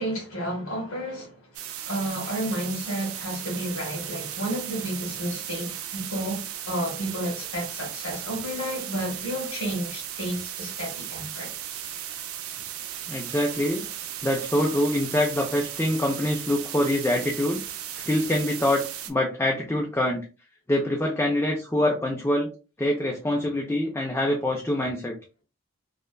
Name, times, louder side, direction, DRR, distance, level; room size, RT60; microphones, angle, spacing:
voice 1, 0.0-1.5 1.8-11.5, right 1 dB, 85° left, 1.4 m, -31 dB
sound 1, 1.5-19.1, right 10 dB, 85° right, 0.4 m, -36 dB
voice 2, 13.1-13.9 14.2-17.6 18.1-20.2 20.7-22.5 22.8-25.1, left 1 dB, 10° left, 0.3 m, -25 dB
3.1 x 2.3 x 2.2 m
head